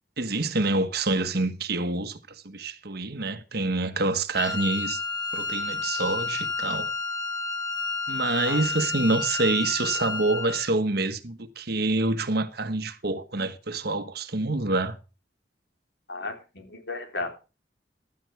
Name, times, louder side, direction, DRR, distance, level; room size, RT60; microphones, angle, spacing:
voice 1, 0.2-5.0 5.3-6.9 8.1-15.0, right 2 dB, 65° right, 1.3 m, -27 dB
Wind instrument woodwind instrument, 4.3-10.7, left 3 dB, 25° left, 6.4 m, -30 dB
voice 2, 16.1-17.3, left 3 dB, 80° left, 3.4 m, -34 dB
16.0 x 12.0 x 3.4 m
head